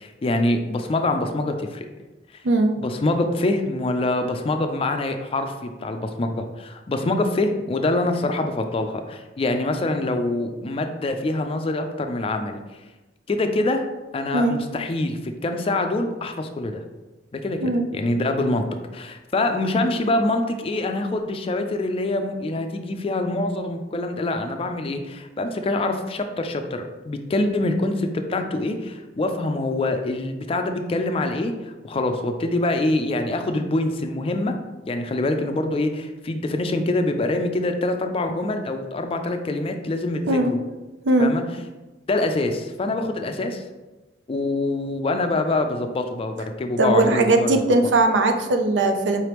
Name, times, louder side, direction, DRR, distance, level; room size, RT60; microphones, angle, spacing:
voice 1, 0.0-1.9 2.8-12.6 13.3-13.8 14.1-16.8 17.3-18.6 18.9-34.5 34.9-40.6 41.2-41.4 42.1-43.6 44.3-47.9, left 2 dB, 30° left, 6 dB, 0.4 m, -25 dB
voice 2, 2.4-2.8 14.3-14.6 17.6-17.9 40.3-40.5 41.0-41.3 46.8-49.3, right 2 dB, 85° right, 5 dB, 0.5 m, -19 dB
4.7 x 3.3 x 3.0 m, 1.1 s
head